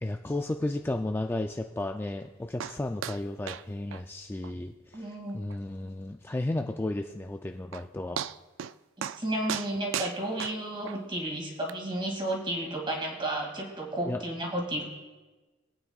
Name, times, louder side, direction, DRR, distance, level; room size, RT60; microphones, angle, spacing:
voice 1, 0.0-8.2 14.1-14.2, left 2 dB, 10° left, 4 dB, 0.3 m, -33 dB
sound 1, 2.6-2.8 3.0-3.2 3.5-3.6 3.9-4.0 4.4-4.5 4.9-5.0 5.5-5.6 7.3-7.4 7.7-7.9 8.2-8.7 9.0-9.2 9.5-11.0 11.7-11.8, right 9 dB, 75° right, 0.3 m, -35 dB
voice 2, 4.9-5.4 9.0-14.8, right 1 dB, 25° right, 0 dB, 2.4 m, -32 dB
23.0 x 8.8 x 2.4 m, 1.2 s
head